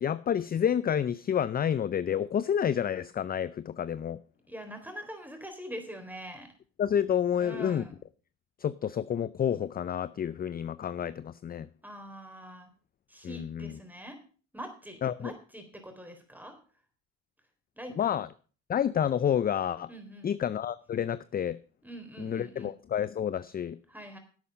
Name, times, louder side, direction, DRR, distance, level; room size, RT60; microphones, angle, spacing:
voice 1, 0.0-4.2 6.8-7.8 8.6-11.7 13.2-13.8 15.0-15.3 18.0-18.3 18.7-19.9 20.2-21.6 22.2-23.8, left 9 dB, 25° left, 16 dB, 0.4 m, -29 dB
voice 2, 4.5-6.5 7.4-7.9 11.8-12.7 13.1-14.2 14.5-16.5 17.8-18.1 19.9-20.3 21.8-22.7 23.9-24.2, equal, 5° right, 6 dB, 3.7 m, -44 dB
11.0 x 8.4 x 5.2 m, 0.39 s
supercardioid pair, 75°, 37 cm